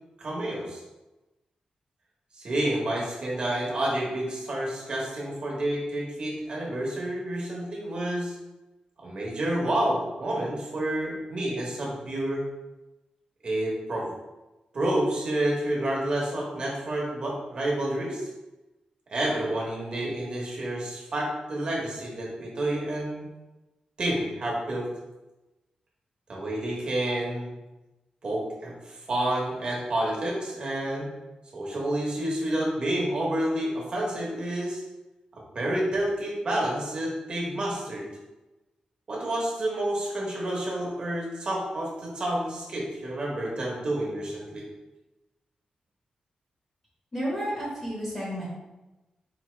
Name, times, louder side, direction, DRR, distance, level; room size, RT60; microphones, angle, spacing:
voice 1, 0.2-0.8 2.4-8.3 9.0-12.4 13.4-14.1 14.7-18.3 19.1-23.3 24.0-24.9 26.3-27.5 28.2-31.1 31.5-34.8 35.5-38.1 39.1-44.7, right 1 dB, 40° right, -3 dB, 1.0 m, -29 dB
voice 2, 47.1-48.5, equal, 15° left, -6 dB, 0.9 m, -31 dB
4.9 x 2.7 x 3.2 m, 1.1 s
wide cardioid pair, 180°, 2 cm